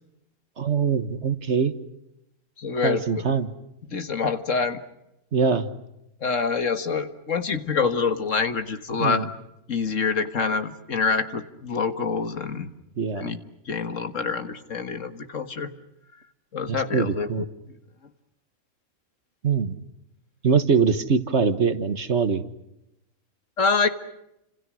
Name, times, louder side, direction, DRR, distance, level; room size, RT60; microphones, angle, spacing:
voice 1, 0.6-1.7 2.8-3.5 5.3-5.7 9.0-9.3 13.0-13.4 16.7-17.4 19.4-19.7 20.4-22.4, right 5 dB, 55° right, 11 dB, 1.7 m, -23 dB
voice 2, 2.6-3.2 3.8-4.8 6.2-9.3 9.7-12.7 13.2-13.4 13.7-15.7 16.5-17.5 23.6-23.9, left 5 dB, 60° left, 9 dB, 2.0 m, -26 dB
30.0 x 27.0 x 6.3 m, 0.86 s
omnidirectional pair, 1.5 m